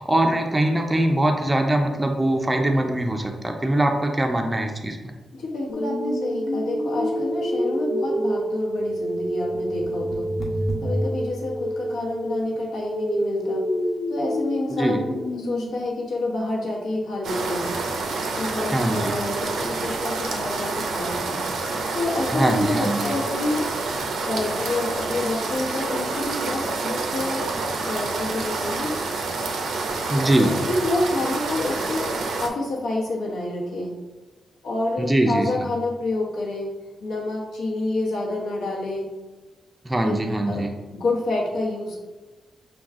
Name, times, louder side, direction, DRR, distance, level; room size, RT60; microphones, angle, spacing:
voice 1, 0.0-5.0 14.7-15.0 18.7-19.1 22.3-23.0 30.1-30.5 35.0-35.5 39.8-40.7, right 1 dB, 15° right, 3 dB, 0.4 m, -22 dB
voice 2, 5.3-13.7 14.1-17.7 18.3-23.7 24.2-27.5 27.8-29.0 30.4-34.0 34.6-39.2 40.0-40.2 40.5-40.6 40.9-42.0, left 2 dB, 90° left, -3 dB, 1.1 m, -28 dB
sound 1, 5.7-15.7, equal, 40° left, 0.9 m, -27 dB
sound 2, 17.2-32.5, right 3 dB, 90° right, 0.5 m, -28 dB
6.1 x 2.3 x 3.5 m, 1.2 s
wide cardioid pair, 165°, 0 cm